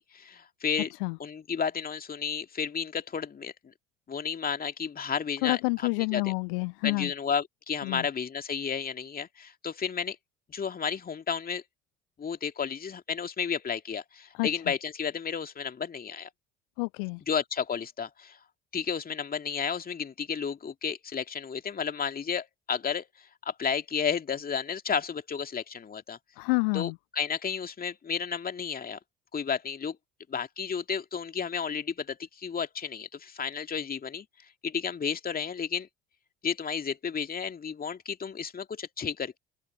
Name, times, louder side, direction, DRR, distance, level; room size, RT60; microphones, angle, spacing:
voice 1, 0.0-0.9 1.2-3.5 4.1-5.6 6.1-6.3 6.8-10.2 10.5-11.6 12.2-16.3 17.3-18.4 18.7-23.1 23.4-26.2 26.7-29.0 29.3-30.0 30.3-34.3 34.6-35.9 36.4-39.4, left 6 dB, 30° left, 2.4 m, -32 dB
voice 2, 5.4-7.1 7.8-8.1 14.3-14.5 16.8-17.2 26.4-27.0, left 34 dB, 65° left, 0.7 m, -28 dB
open air
figure-of-eight pair, 60°, 30 cm